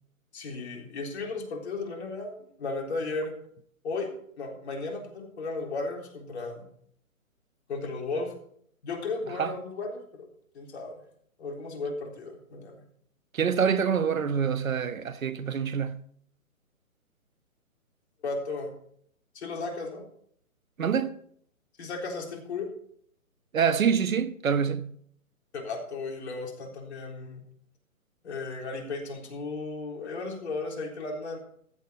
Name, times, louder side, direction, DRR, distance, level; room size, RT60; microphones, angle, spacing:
voice 1, 0.3-3.3 3.8-4.1 4.4-6.7 7.7-8.3 8.8-10.3 10.5-11.0 11.4-12.8 18.2-18.7 19.3-20.0 21.8-22.7 25.5-27.4 28.2-31.4, left 3 dB, 50° left, 3.8 m, -35 dB
voice 2, 13.3-16.0 20.8-21.1 23.5-24.9, right 7 dB, 70° right, 1.2 m, -26 dB
15.0 x 9.7 x 4.5 m
hypercardioid pair, 150°, 42 cm